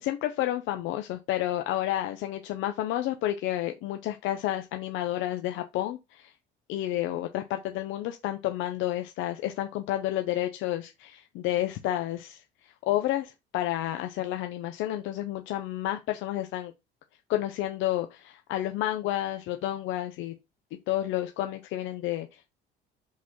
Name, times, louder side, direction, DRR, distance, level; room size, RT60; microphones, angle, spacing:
voice 1, 0.0-6.3 6.7-16.7 17.3-20.3 20.9-22.5, left 13 dB, 70° left, 0.7 m, -30 dB
5.1 x 4.1 x 5.5 m
cardioid pair, 110°, 20 cm